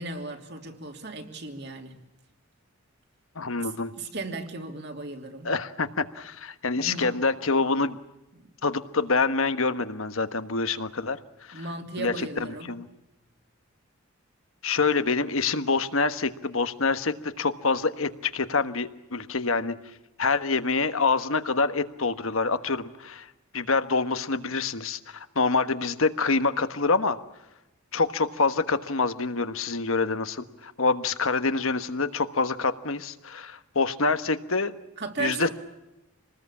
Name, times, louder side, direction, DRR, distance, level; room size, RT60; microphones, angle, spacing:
voice 1, 0.0-2.0 3.6-3.7 4.0-5.5 6.8-7.1 8.3-8.5 11.5-12.7 35.0-35.5, right 3 dB, 50° right, 3 dB, 3.0 m, -36 dB
voice 2, 3.3-3.9 5.4-8.0 8.6-11.6 12.0-12.9 14.6-19.7 20.2-23.3 23.5-27.2 27.9-34.7 35.2-35.5, left 4 dB, 70° left, 10 dB, 1.3 m, -26 dB
26.5 x 20.0 x 8.5 m, 0.96 s
head